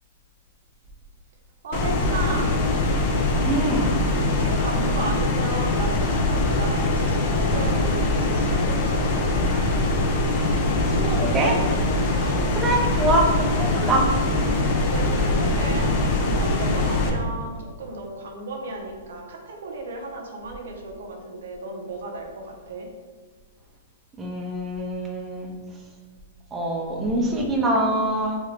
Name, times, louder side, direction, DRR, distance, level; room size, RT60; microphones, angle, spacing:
voice 1, 1.6-2.5 4.4-9.6 12.1-12.5 13.7-14.0 14.8-15.9 16.4-22.9, right 2 dB, 70° right, 2 dB, 0.6 m, -34 dB
sound 1, 1.7-17.1, left 2 dB, 45° left, 0.5 m, -22 dB
voice 2, 3.4-4.0 10.9-11.6 11.9-12.1 12.5-13.3 13.6-14.0 24.2-25.5 26.5-28.4, right 1 dB, 20° right, 0 dB, 0.6 m, -24 dB
2.9 x 2.3 x 3.3 m, 1.5 s
hypercardioid pair, 125°, 0 cm